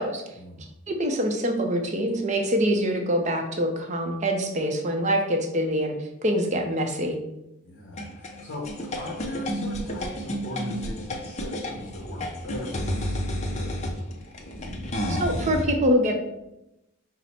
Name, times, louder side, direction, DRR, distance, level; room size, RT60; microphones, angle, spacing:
voice 1, 0.3-0.7 7.6-8.7 9.0-14.1, left 1 dB, 50° left, -4 dB, 0.9 m, -39 dB
voice 2, 0.9-5.9 6.2-7.2 15.1-16.2, equal, 35° right, 3 dB, 0.6 m, -25 dB
sound 1, 8.0-15.6, equal, 30° left, 0.5 m, -31 dB
5.7 x 2.1 x 4.2 m, 0.89 s
head